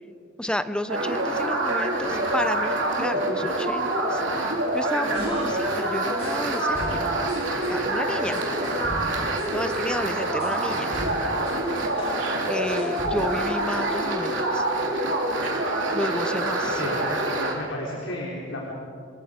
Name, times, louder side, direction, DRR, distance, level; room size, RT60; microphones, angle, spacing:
voice 1, 0.4-4.2 4.7-7.1 7.7-8.4 9.5-10.9 12.5-14.6 15.9-16.8, left 1 dB, 5° left, 11 dB, 0.7 m, -31 dB
sound 1, 0.9-17.5, right 1 dB, 75° right, 3.2 m, -26 dB
sound 2, 5.1-7.7 8.3-12.2 12.4-13.5, equal, 30° left, 6.8 m, -38 dB
voice 2, 16.6-17.1 17.5-18.7, left 1 dB, 80° left, -4 dB, 3.8 m, -33 dB
26.5 x 23.0 x 5.1 m, 2.3 s
head